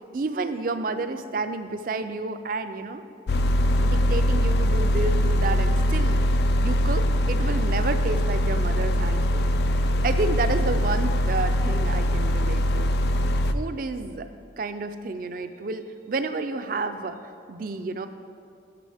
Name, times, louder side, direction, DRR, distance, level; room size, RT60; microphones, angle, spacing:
voice 1, 0.1-3.0 3.8-6.2 6.6-12.9 13.5-14.3 14.6-17.2 17.5-18.1, right 3 dB, 50° right, 9 dB, 0.4 m, -30 dB
sound 1, 3.3-13.5, left 1 dB, 60° left, 0.3 m, -22 dB
12.5 x 6.1 x 3.5 m, 2.5 s
head